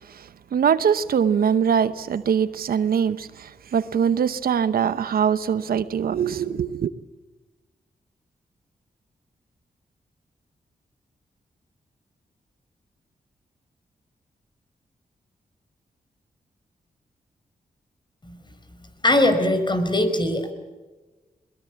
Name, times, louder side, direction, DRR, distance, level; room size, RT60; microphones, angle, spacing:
voice 1, 0.0-6.9, right 7 dB, 80° right, 0.9 m, -23 dB
voice 2, 19.0-20.5, left 1 dB, 30° left, 4.7 m, -21 dB
21.5 x 21.0 x 8.5 m
cardioid pair, 55°, 15 cm